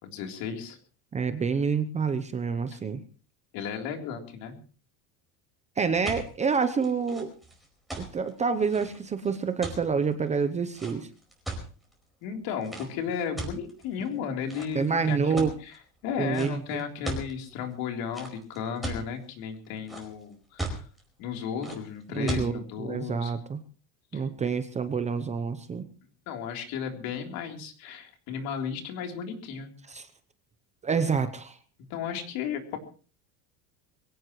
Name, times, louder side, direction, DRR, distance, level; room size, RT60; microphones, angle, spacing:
voice 1, 0.0-0.8 2.7-2.8 3.5-4.6 12.2-20.9 21.2-23.3 24.1-24.3 26.3-29.7 31.9-32.8, left 7 dB, 60° left, 3 dB, 3.7 m, -34 dB
voice 2, 1.1-3.0 5.8-7.3 8.0-11.1 14.7-15.5 16.2-16.8 22.1-23.6 24.1-25.8 29.9-30.1 30.8-31.6, right 5 dB, 15° right, 10 dB, 0.8 m, -28 dB
sound 1, 5.8-11.9 12.6-12.9 13.4-14.1 14.5-14.9 15.4-15.8 16.3-16.5 16.8-17.3 18.1-19.0 19.5-20.2 20.6-21.0 21.6-21.8 22.3-22.5, right 2 dB, ahead, 4.7 m, -36 dB
23.0 x 17.0 x 3.2 m, 0.39 s
cardioid pair, 160°, 40 cm